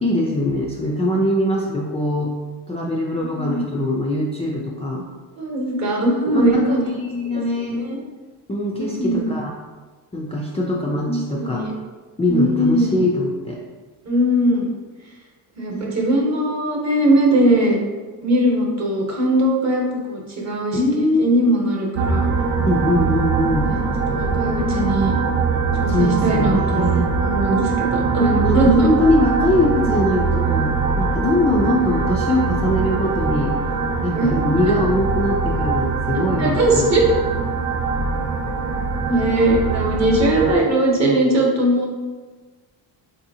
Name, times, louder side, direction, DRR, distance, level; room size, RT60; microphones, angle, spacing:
voice 1, 0.0-2.3 2.7-5.1 6.3-7.8 8.5-9.5 10.1-11.7 12.2-13.6 15.7-16.0 20.7-21.2 22.6-23.7 25.9-27.1 28.2-33.5 34.0-36.9, left 1 dB, 15° left, -4 dB, 0.3 m, -22 dB
voice 2, 3.2-3.7 5.4-6.8 7.3-7.4 7.8-8.0 8.8-9.3 10.9-11.7 12.3-13.0 14.0-14.7 15.6-17.8 18.2-20.8 21.2-22.3 23.6-23.8 24.1-25.2 25.8-28.9 34.1-34.7 36.4-37.0 39.1-41.9, right 1 dB, 40° right, -1 dB, 0.9 m, -20 dB
sound 1, 21.9-40.6, right 4 dB, 85° right, 0.6 m, -22 dB
4.0 x 2.8 x 2.7 m, 1.4 s
cardioid pair, 100°, 43 cm